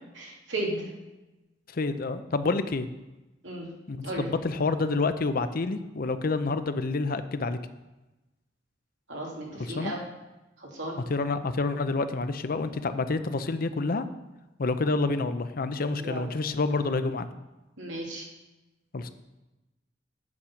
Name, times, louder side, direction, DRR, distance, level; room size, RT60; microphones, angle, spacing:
voice 1, 0.2-0.9 3.4-3.7 4.0-4.3 9.1-10.0 10.6-11.0 16.0-16.3 17.8-18.3, right 1 dB, 85° right, -2 dB, 2.6 m, -34 dB
voice 2, 1.7-2.9 3.9-7.6 9.6-9.9 11.1-14.1 14.6-17.3 18.9-19.1, left 3 dB, 50° left, 10 dB, 0.6 m, -28 dB
8.5 x 6.6 x 5.8 m, 1.0 s
head